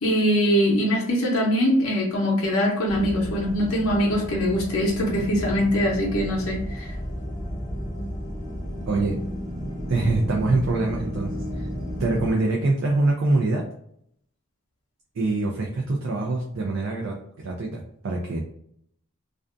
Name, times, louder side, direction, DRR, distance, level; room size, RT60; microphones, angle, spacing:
voice 1, 0.0-6.9, equal, 80° left, -2 dB, 0.7 m, -22 dB
sound 1, 2.9-12.3, equal, 20° left, 0.5 m, -32 dB
voice 2, 8.9-9.2 9.9-11.7 12.0-13.6 15.1-18.4, right 2 dB, 65° right, -1 dB, 0.4 m, -24 dB
2.5 x 2.2 x 2.5 m, 0.69 s
head